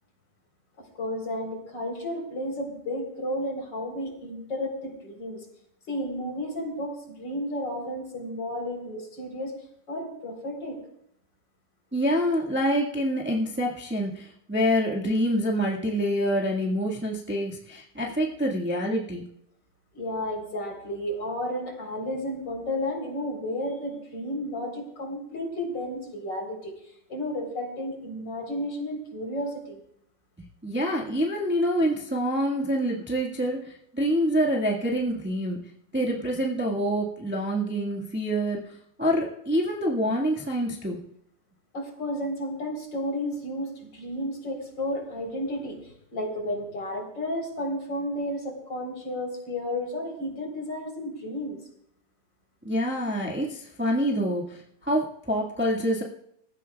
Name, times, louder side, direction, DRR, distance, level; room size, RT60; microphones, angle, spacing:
voice 1, 1.0-5.4 5.9-9.5 9.9-10.8 19.9-26.7 27.1-29.8 41.7-51.6, left 1 dB, 35° left, 2 dB, 4.5 m, -32 dB
voice 2, 11.9-19.2 30.6-35.6 35.9-41.0 52.6-56.0, equal, 10° right, -2 dB, 0.6 m, -26 dB
25.0 x 15.0 x 2.4 m, 0.73 s
omnidirectional pair, 3.6 m